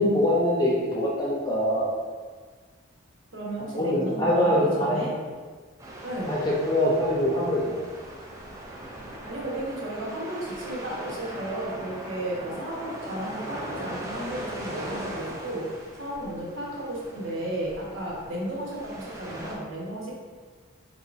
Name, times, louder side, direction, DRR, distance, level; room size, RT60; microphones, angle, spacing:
voice 1, 0.0-1.9 3.6-5.1 6.3-7.8, left 1 dB, 20° left, -4 dB, 0.7 m, -24 dB
voice 2, 3.3-5.2 6.0-6.4 9.2-20.1, right 1 dB, 75° right, -4 dB, 1.1 m, -34 dB
sound 1, 5.8-19.6, right 1 dB, 15° right, 0.4 m, -40 dB
4.2 x 3.6 x 2.5 m, 1.5 s
head